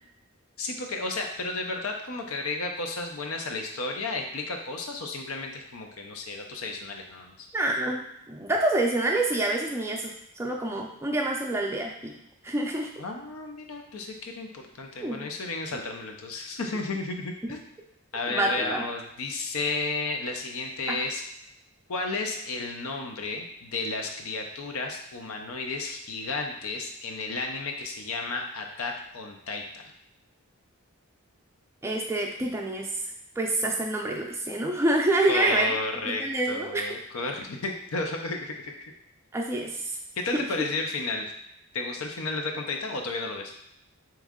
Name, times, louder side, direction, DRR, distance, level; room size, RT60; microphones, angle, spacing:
voice 1, 0.6-7.5 13.0-17.6 18.1-21.2 21.9-29.8 35.3-38.9 40.2-41.3 41.7-43.5, left 3 dB, 70° left, 3 dB, 0.6 m, -33 dB
voice 2, 7.5-12.2 12.4-12.9 15.0-15.3 18.3-18.9 20.9-21.0 31.8-33.0 33.4-35.7 36.1-36.8 39.3-40.0 40.3-40.7, right 2 dB, 10° right, 0 dB, 0.4 m, -27 dB
3.6 x 3.1 x 3.6 m, 0.80 s
head